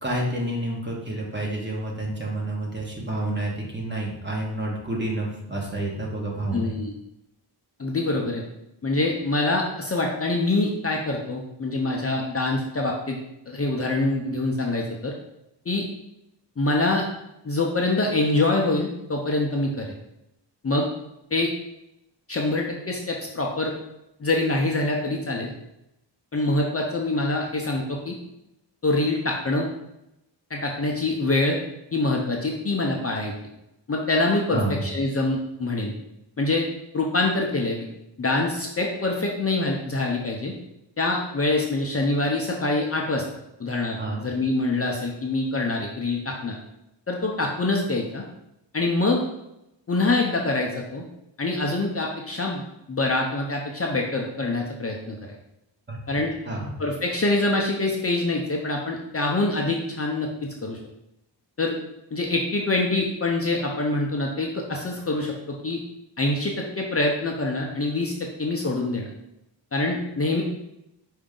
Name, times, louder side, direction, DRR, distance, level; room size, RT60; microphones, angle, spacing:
voice 1, 0.0-6.7 34.5-34.8 44.0-44.2 55.9-56.0 56.4-56.7, right 1 dB, 25° right, -3 dB, 1.2 m, -29 dB
voice 2, 6.5-6.9 7.8-8.4 8.8-13.2 13.5-15.1 15.7-15.8 16.6-17.0 17.4-19.9 20.6-20.9 21.3-21.5 22.3-23.7 24.2-25.5 26.3-28.2 28.8-29.7 30.5-31.6 31.9-33.3 33.9-35.9 36.4-36.6 36.9-37.9 38.2-40.5 41.0-43.3 43.6-46.6 47.1-48.2 48.7-49.2 49.9-51.0 51.4-52.6 52.9-55.3 56.1-56.3 56.8-60.8 61.6-61.8 62.1-65.8 66.2-68.1 68.4-69.1 69.7-70.4, left 2 dB, 35° left, -1 dB, 0.6 m, -25 dB
4.9 x 2.7 x 3.7 m, 0.86 s
wide cardioid pair, 85°, 43 cm